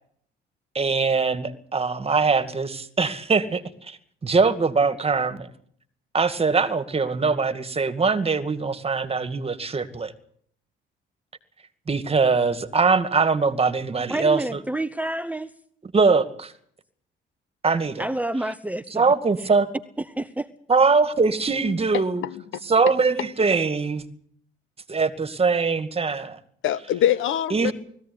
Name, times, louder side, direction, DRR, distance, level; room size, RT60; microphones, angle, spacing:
voice 1, 0.7-4.0 4.2-5.5 6.1-10.1 11.9-14.6 15.9-16.5 17.6-18.0 19.0-19.7 20.7-22.2 22.7-24.0 24.9-26.4 27.5-27.7, right 4 dB, 30° right, 11 dB, 2.2 m, -22 dB
voice 2, 14.1-15.5 18.0-19.1 20.0-20.5, right 1 dB, 5° right, 12 dB, 0.9 m, -28 dB
voice 3, 21.9-22.6 26.6-27.7, left 11 dB, 80° left, 16 dB, 1.3 m, -24 dB
20.5 x 15.5 x 9.4 m, 0.63 s
cardioid pair, 90°, 20 cm